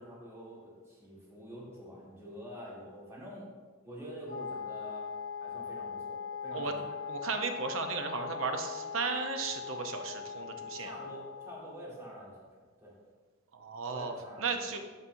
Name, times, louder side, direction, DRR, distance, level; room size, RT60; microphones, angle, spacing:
voice 1, 0.0-3.5 3.8-5.1 5.4-7.0 10.8-12.5 12.8-12.9 13.9-14.7, equal, 15° right, -6 dB, 1.8 m, -47 dB
Wind instrument woodwind instrument, 4.3-11.7, left 6 dB, 70° left, 0.8 m, -40 dB
voice 2, 7.1-10.9 13.6-14.1 14.4-14.8, right 4 dB, 70° right, 5 dB, 0.7 m, -35 dB
12.0 x 4.2 x 2.6 m, 1.5 s
head